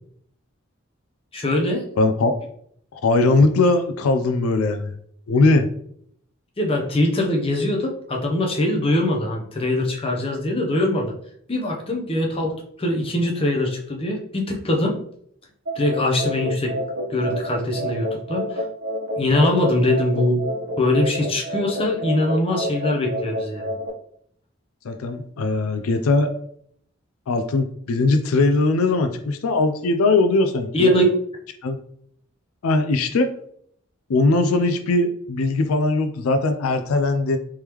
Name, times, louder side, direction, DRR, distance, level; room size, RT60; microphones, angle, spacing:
voice 1, 1.3-1.8 6.6-11.1 11.5-15.0 15.8-16.8 17.1-18.6 19.2-20.4 20.8-23.7 30.7-31.1, left 1 dB, 25° left, 0 dB, 0.7 m, -22 dB
voice 2, 2.0-2.3 2.9-4.9 5.3-5.7 24.8-26.3 27.3-31.0 31.6-31.8 32.6-33.3 34.1-37.4, left 2 dB, 90° left, 8 dB, 0.4 m, -20 dB
sound 1, 15.7-23.9, equal, 70° right, 1.0 m, -29 dB
3.6 x 3.2 x 3.0 m, 0.66 s
head